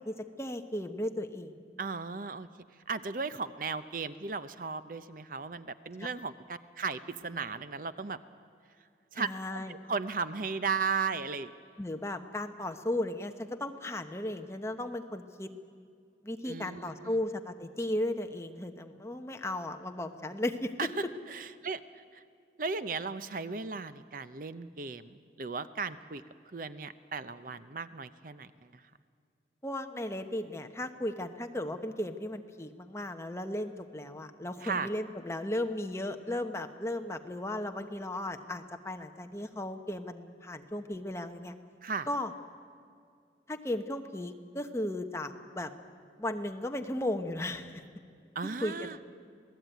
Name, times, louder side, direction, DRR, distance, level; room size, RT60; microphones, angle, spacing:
voice 1, 0.0-1.5 6.0-6.1 9.1-9.8 11.8-15.5 16.2-21.1 29.6-41.5 42.1-42.3 43.5-45.7 46.2-47.8 48.4-49.0, left 1 dB, 15° left, 6 dB, 1.1 m, -35 dB
voice 2, 1.8-2.5 2.9-8.2 9.1-11.5 16.5-17.1 20.8-20.9 21.3-21.8 22.6-26.2 26.5-28.5 34.6-34.9 41.8-42.1 48.4-49.0, right 5 dB, 50° right, 13 dB, 0.7 m, -36 dB
27.0 x 18.0 x 9.2 m, 2.3 s
head